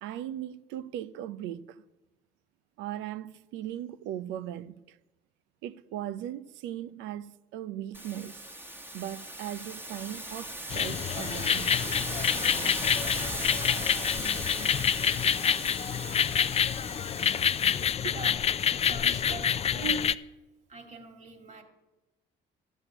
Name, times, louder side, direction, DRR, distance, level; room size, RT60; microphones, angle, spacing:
voice 1, 0.0-1.8 2.8-5.0 5.6-8.5 8.9-11.8 14.2-14.3 18.0-18.2 18.8-18.9, right 12 dB, 90° right, 0.6 m, -38 dB
sound 1, 7.9-17.9, right 1 dB, 10° right, 1.1 m, -38 dB
sound 2, 10.7-20.1, left 8 dB, 35° left, 0.4 m, -27 dB
voice 2, 17.9-18.3 18.7-20.0 20.7-21.6, right 5 dB, 40° right, 2.3 m, -41 dB
13.0 x 6.3 x 9.8 m
cardioid pair, 100°, 19 cm